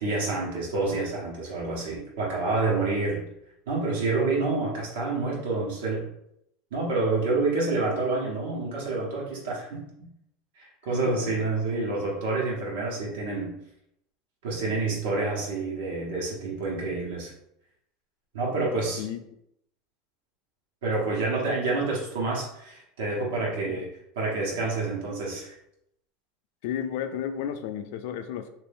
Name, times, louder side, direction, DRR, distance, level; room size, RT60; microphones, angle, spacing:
voice 1, 0.0-3.2 3.7-6.1 6.7-9.8 10.6-13.6 14.4-17.3 18.3-19.0 20.8-25.5, right 3 dB, 85° right, -4 dB, 1.1 m, -28 dB
voice 2, 10.9-11.4 19.0-19.2 23.6-23.8 26.6-28.5, left 9 dB, 60° left, 8 dB, 0.3 m, -33 dB
2.8 x 2.6 x 3.6 m, 0.77 s
supercardioid pair, 170°, 0 cm